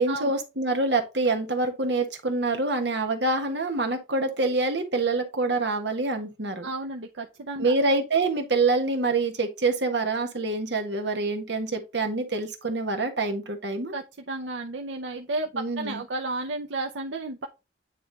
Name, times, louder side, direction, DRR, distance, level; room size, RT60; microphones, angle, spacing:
voice 1, 0.0-6.7 7.6-13.9 15.5-16.0, right 3 dB, 65° right, 1.4 m, -26 dB
voice 2, 6.6-7.7 13.9-15.5 15.8-17.5, right 2 dB, 85° right, 0.7 m, -32 dB
9.5 x 3.3 x 4.0 m
head